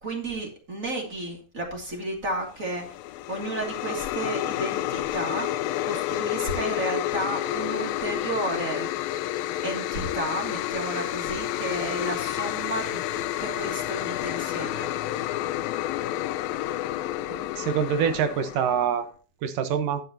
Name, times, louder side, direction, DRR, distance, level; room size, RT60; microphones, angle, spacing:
voice 1, 0.0-2.9 3.3-8.9 9.6-14.9, right 1 dB, 25° right, 0 dB, 2.5 m, -32 dB
sound 1, 2.6-19.0, left 14 dB, 85° left, 2.4 m, -30 dB
voice 2, 17.6-19.1 19.4-20.0, right 8 dB, 70° right, 8 dB, 2.7 m, -25 dB
12.0 x 9.2 x 2.9 m, 0.37 s
omnidirectional pair, 4.1 m